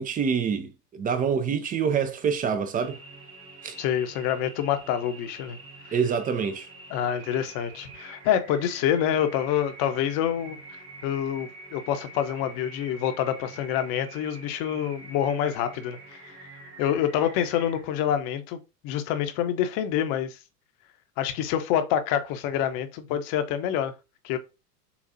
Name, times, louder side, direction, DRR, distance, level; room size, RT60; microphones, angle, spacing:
voice 1, 0.0-3.0 3.6-3.8 5.9-6.7, right 6 dB, 20° right, 0.5 m, -26 dB
sound 1, 2.8-17.8, right 3 dB, 90° right, 2.8 m, -46 dB
voice 2, 3.8-5.6 6.9-10.6 11.0-16.4 16.8-18.6 18.8-20.4 21.2-23.9 24.2-24.4, left 10 dB, 45° left, 0.9 m, -27 dB
7.0 x 2.4 x 2.7 m
hypercardioid pair, 95°, 46 cm